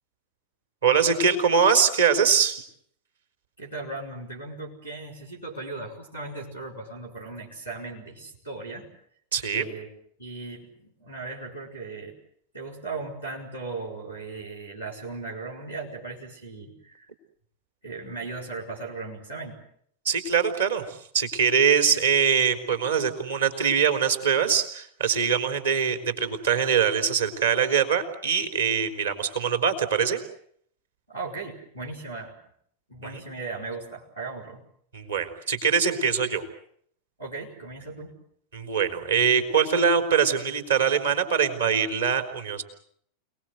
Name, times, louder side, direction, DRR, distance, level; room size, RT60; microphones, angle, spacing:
voice 1, 0.8-2.6 9.3-9.6 20.1-30.2 34.9-36.4 38.5-42.6, right 7 dB, 70° right, 7 dB, 3.9 m, -23 dB
voice 2, 3.6-8.9 9.5-9.9 10.2-12.1 12.5-17.1 17.8-19.6 31.1-32.4 32.9-34.6 37.2-38.1, right 3 dB, 85° right, -3 dB, 5.4 m, -37 dB
29.0 x 19.5 x 7.9 m, 0.66 s
figure-of-eight pair, 90°, 0 cm